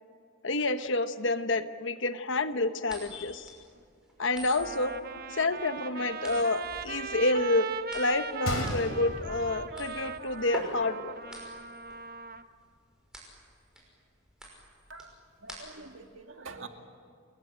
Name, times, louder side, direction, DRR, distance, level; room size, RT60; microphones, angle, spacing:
voice 1, 0.4-3.6 4.2-11.2, left 2 dB, 60° left, 10 dB, 1.1 m, -29 dB
sound 1, 2.8-16.0, equal, 5° right, 5.8 m, -46 dB
Trumpet, 3.8-3.9 4.5-12.4, right 5 dB, 45° right, 0.9 m, -39 dB
Gunshot gunfire, 8.4-10.5 10.8-10.9 11.5-11.7, left 1 dB, 75° left, 3.1 m, -35 dB
voice 2, 14.9-16.7, right 4 dB, 65° right, 5 dB, 2.1 m, -46 dB
28.5 x 21.0 x 9.0 m, 2.1 s
head